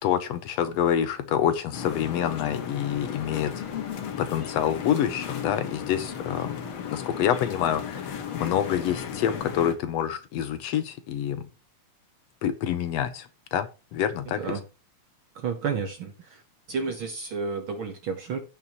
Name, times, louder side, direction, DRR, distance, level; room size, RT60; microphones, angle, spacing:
voice 1, 0.0-3.6 4.2-6.6 6.9-11.5 12.4-14.4, left 9 dB, 70° left, 1.8 m, -27 dB
sound 1, 1.7-9.7, left 8 dB, 55° left, 1.9 m, -35 dB
voice 2, 14.3-14.6 15.3-16.4 16.7-18.4, right 5 dB, 60° right, 1.4 m, -31 dB
16.5 x 5.6 x 3.0 m
omnidirectional pair, 3.3 m